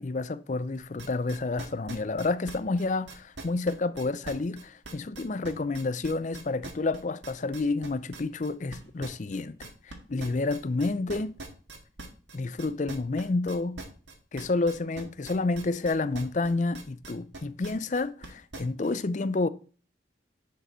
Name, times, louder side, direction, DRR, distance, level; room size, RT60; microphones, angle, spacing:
voice 1, 0.0-11.4 12.3-13.8 14.3-19.5, left 3 dB, 40° left, 0.5 m, -29 dB
sound 1, 0.7-18.9, right 3 dB, 70° right, 1.8 m, -43 dB
10.0 x 5.0 x 4.5 m
head